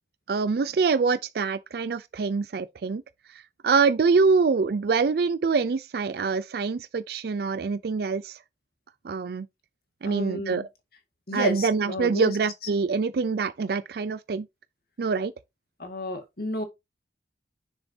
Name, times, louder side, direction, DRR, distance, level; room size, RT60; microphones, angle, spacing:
voice 1, 0.3-3.0 3.3-8.4 9.0-9.5 10.0-10.7 11.3-14.5 15.0-15.3, right 4 dB, 60° right, 0.4 m, -25 dB
voice 2, 10.1-10.6 11.3-12.4 15.8-16.6, left 1 dB, 60° left, 1.9 m, -32 dB
6.8 x 6.7 x 2.7 m
head